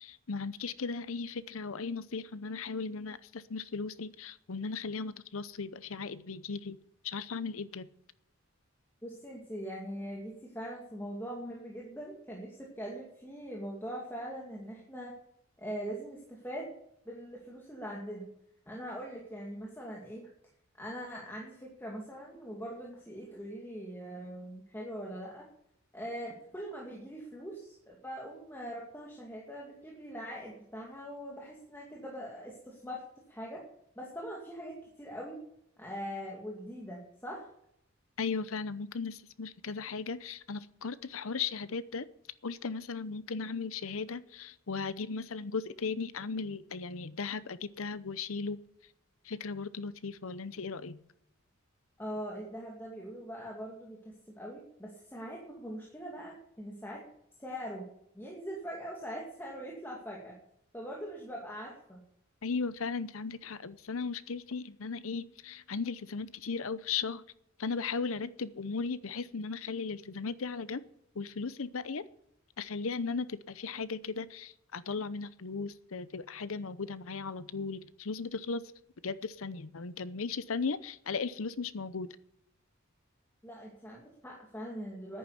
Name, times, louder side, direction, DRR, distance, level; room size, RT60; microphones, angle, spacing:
voice 1, 0.0-6.8 7.0-7.9 38.2-42.1 42.4-48.6 49.2-51.0 62.4-67.2 67.6-70.8 71.1-72.1 72.6-78.6 79.0-82.1, left 4 dB, 70° left, 16 dB, 0.7 m, -37 dB
voice 2, 9.0-15.2 15.6-16.7 17.1-18.3 18.7-20.3 20.8-25.4 25.9-33.0 33.3-33.7 34.0-35.4 35.8-37.5 52.0-57.0 57.4-57.8 58.1-60.4 60.7-62.0 83.4-85.2, equal, 10° left, -2 dB, 2.2 m, -42 dB
10.5 x 9.6 x 8.1 m, 0.74 s
head